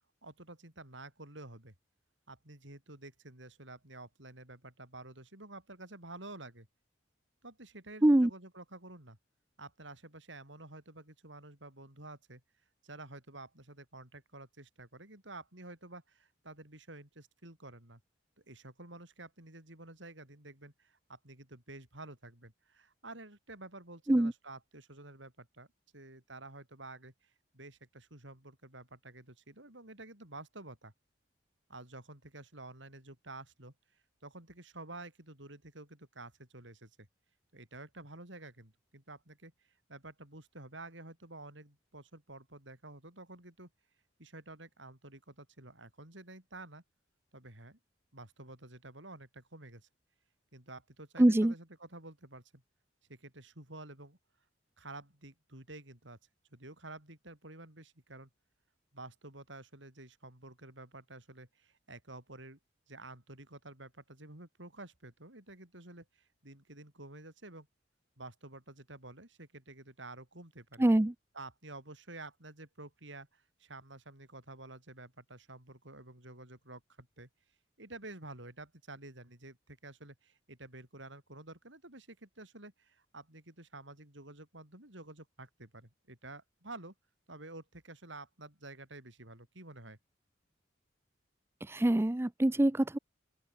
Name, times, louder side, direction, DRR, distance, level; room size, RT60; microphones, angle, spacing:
voice 1, 0.2-1.7 2.3-6.7 7.4-9.2 9.6-12.4 12.8-18.0 18.5-25.7 25.9-30.9 31.7-33.7 34.2-37.1 37.5-39.5 39.9-43.7 44.2-46.8 47.3-47.8 48.1-49.9 50.5-52.6 53.1-54.2 54.8-56.2 56.5-58.3 58.9-62.6 62.9-67.7 68.2-70.9 71.3-77.3 77.8-86.9 87.3-90.0, right 2 dB, 70° right, 6.7 m, -50 dB
voice 2, 51.2-51.5 70.8-71.1 91.7-93.0, right 1 dB, 15° right, 0.4 m, -24 dB
open air
head